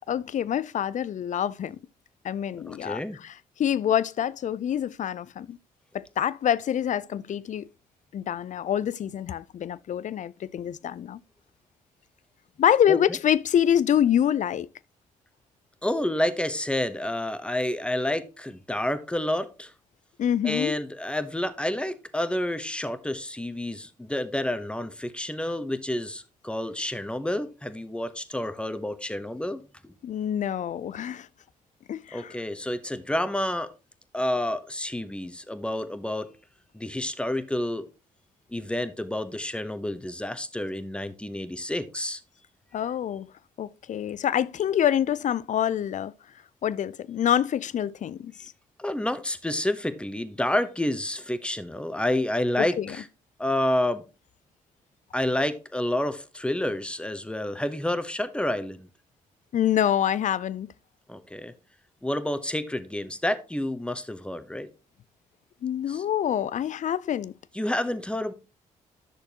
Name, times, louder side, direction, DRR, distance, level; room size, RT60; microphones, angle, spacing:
voice 1, 0.1-1.8 2.2-3.3 3.6-5.6 5.9-7.7 8.1-11.2 12.6-14.7 20.2-20.8 30.0-31.3 31.9-32.4 42.7-43.3 43.6-46.1 46.6-48.5 52.8-53.0 59.5-60.7 65.6-67.3, left 10 dB, 45° left, 0.5 m, -26 dB
voice 2, 2.7-3.2 12.9-13.0 15.8-19.7 20.4-29.9 32.1-33.7 34.1-36.3 36.7-37.9 38.5-42.2 48.8-53.0 53.4-54.0 55.1-58.9 61.1-61.5 62.0-64.7 65.9-66.0 67.5-68.3, left 1 dB, 5° left, 1.0 m, -29 dB
11.0 x 6.5 x 2.9 m
hypercardioid pair, 45°, 17 cm